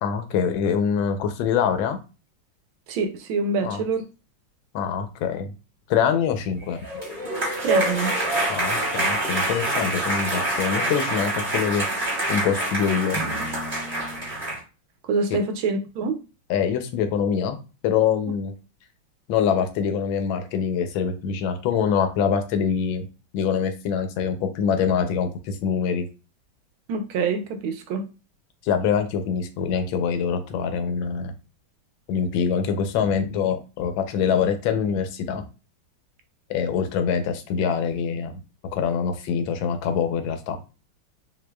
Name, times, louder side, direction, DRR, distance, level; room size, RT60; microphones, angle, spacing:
voice 1, 0.0-2.0 3.6-3.8 4.7-5.5 5.9-6.8 8.5-11.8 12.3-13.2 15.3-15.4 16.5-17.6 17.8-18.5 19.3-23.1 23.3-26.1 28.6-31.3 32.1-35.4 36.5-38.3 38.7-40.6, left 7 dB, 75° left, 1.4 m, -24 dB
voice 2, 2.9-4.0 7.6-8.1 15.1-16.2 26.9-28.0, right 4 dB, 85° right, 1.5 m, -25 dB
sound 1, 6.7-14.6, right 1 dB, 30° right, 2.0 m, -26 dB
6.0 x 2.6 x 2.3 m
omnidirectional pair, 2.2 m